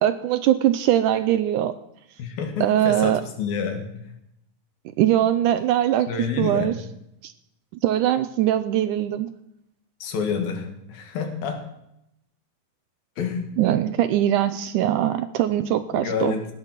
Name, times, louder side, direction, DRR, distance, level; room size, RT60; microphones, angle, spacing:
voice 1, 0.0-1.7 2.6-3.2 5.0-6.1 6.4-6.7 7.2-7.3 7.8-9.3 13.6-16.3, right 12 dB, 80° right, 12 dB, 1.9 m, -21 dB
voice 2, 2.2-4.2 6.1-6.8 10.0-11.7 13.2-13.5 15.9-16.5, left 6 dB, 85° left, 6 dB, 3.8 m, -28 dB
16.5 x 9.7 x 6.0 m, 0.80 s
omnidirectional pair, 4.1 m